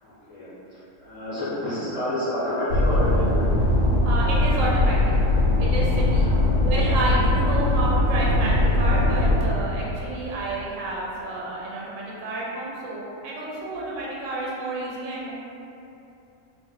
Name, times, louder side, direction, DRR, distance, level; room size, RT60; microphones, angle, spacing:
voice 1, 0.0-3.4 6.2-6.5, left 1 dB, 35° left, -12 dB, 0.6 m, -29 dB
sound 1, 2.7-9.4, left 1 dB, 75° left, 1.0 m, -20 dB
voice 2, 4.0-5.2 5.6-6.3 6.6-15.3, right 2 dB, 70° right, -5 dB, 0.9 m, -30 dB
2.4 x 2.0 x 3.8 m, 2.8 s
omnidirectional pair, 1.4 m